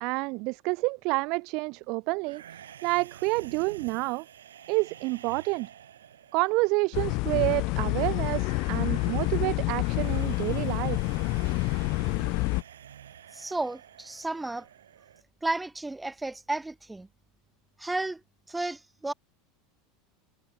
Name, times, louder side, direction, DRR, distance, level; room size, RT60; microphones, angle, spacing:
voice 1, 0.0-4.3 4.7-5.7 6.3-11.0, right 27 dB, 60° right, 0.7 m, -29 dB
sound 1, 2.2-15.2, right 10 dB, 85° right, 8.0 m, -49 dB
sound 2, 6.9-12.6, left 26 dB, 60° left, 0.7 m, -28 dB
voice 2, 13.3-14.7 15.4-17.1 17.8-18.2 18.5-19.1, right 2 dB, 10° right, 2.1 m, -32 dB
hypercardioid pair, 90°, 0 cm